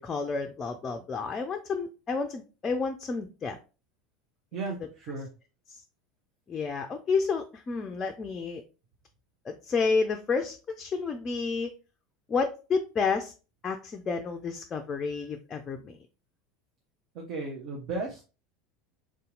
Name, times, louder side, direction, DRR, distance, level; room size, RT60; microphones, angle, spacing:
voice 1, 0.0-3.6 6.5-8.6 9.5-11.7 12.3-13.3 13.6-16.0, left 4 dB, 25° left, 6 dB, 0.4 m, -30 dB
voice 2, 4.5-5.3 17.1-18.2, right 3 dB, 45° right, 0 dB, 0.8 m, -35 dB
3.6 x 2.8 x 3.7 m, 0.33 s
figure-of-eight pair, 75°, 0 cm